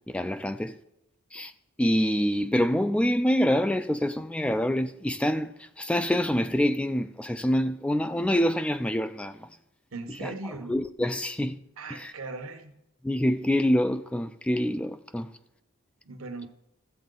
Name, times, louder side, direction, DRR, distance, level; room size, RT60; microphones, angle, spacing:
voice 1, 0.1-0.8 1.3-1.5 1.8-9.5 10.1-10.3 10.7-11.6 11.9-12.1 13.0-15.3, equal, 5° left, 0.3 m, -26 dB
voice 2, 9.9-10.8 11.8-12.7 16.0-16.5, right 3 dB, 85° right, 1.1 m, -38 dB
13.5 x 7.4 x 3.9 m
head